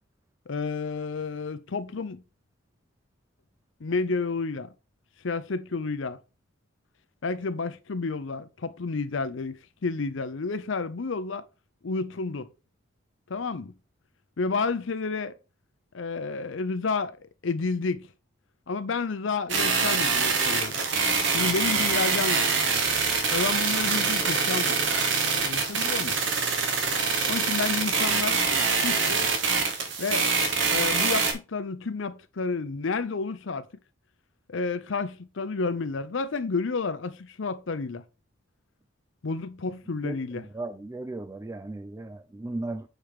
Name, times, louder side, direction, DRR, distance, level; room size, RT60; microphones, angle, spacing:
voice 1, 0.5-2.2 3.8-4.7 5.2-6.2 7.2-9.6 9.8-11.4 11.8-12.5 13.3-13.7 14.4-15.3 15.9-18.1 18.7-20.8 21.3-22.5 23.3-24.8 25.4-26.2 27.2-28.4 28.8-29.3 30.0-30.3 30.7-33.7 34.5-38.0 39.2-40.5, left 4 dB, 65° left, 0.6 m, -30 dB
sound 1, 19.5-31.3, right 5 dB, 60° right, 1.2 m, -25 dB
voice 2, 40.6-42.8, right 2 dB, 15° right, 0.3 m, -36 dB
6.6 x 4.5 x 3.5 m
head